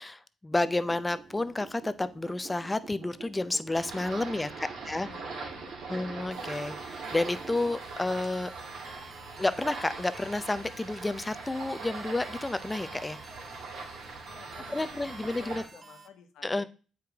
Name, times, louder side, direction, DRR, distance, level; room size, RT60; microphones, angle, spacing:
voice 1, 0.0-5.1 5.9-8.5 9.4-13.2 14.7-15.6 16.4-16.6, left 2 dB, 15° left, 13 dB, 0.5 m, -31 dB
sound 1, 0.5-8.3, right 5 dB, 55° right, 1.1 m, -47 dB
sound 2, 3.7-15.6, right 4 dB, 80° right, 2.8 m, -42 dB
voice 2, 4.8-6.6 14.3-16.7, left 7 dB, 85° left, 7 dB, 1.1 m, -52 dB
sound 3, 6.3-16.1, right 3 dB, 25° right, 1.0 m, -51 dB
8.0 x 4.9 x 3.5 m, 0.36 s
cardioid pair, 90°, 0 cm